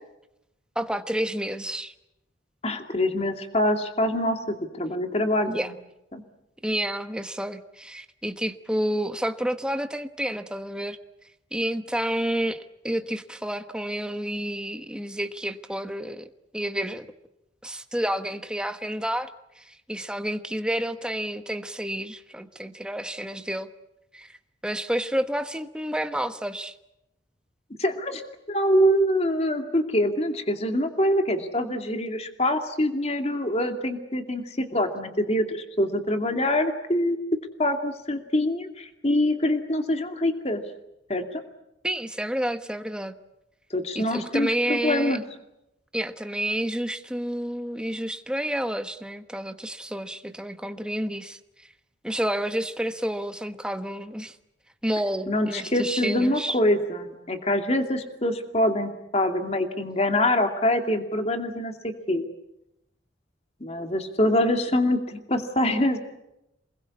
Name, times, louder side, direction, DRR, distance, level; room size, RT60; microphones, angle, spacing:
voice 1, 0.7-1.9 5.5-5.7 6.6-11.0 11.5-17.1 17.6-19.3 19.6-23.7 24.1-24.4 24.6-26.7 41.8-43.1 43.9-45.2 45.9-51.7 52.0-54.4 54.8-56.6, right 1 dB, 5° right, 8 dB, 1.2 m, -30 dB
voice 2, 2.6-5.7 6.1-6.2 27.8-28.2 28.5-37.2 37.6-40.6 41.1-41.4 43.7-45.2 55.3-62.3 63.6-66.0, left 1 dB, 35° left, 5 dB, 2.5 m, -25 dB
28.0 x 21.0 x 8.5 m, 0.87 s
head